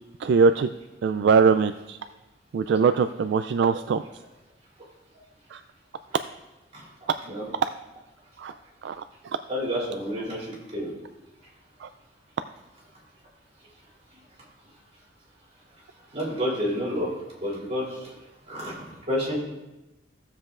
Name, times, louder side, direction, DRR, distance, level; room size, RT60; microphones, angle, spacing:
voice 1, 0.2-0.7 1.0-2.0 2.5-4.0 5.5-5.6 7.6-7.7 8.4-8.5 8.8-9.0 11.8-11.9, right 5 dB, 65° right, 10 dB, 0.3 m, -21 dB
voice 2, 9.5-10.9 16.1-17.1 17.4-18.1 18.5-18.7 19.1-19.4, equal, 35° right, -5 dB, 2.9 m, -29 dB
16.0 x 7.4 x 2.4 m, 1.0 s
head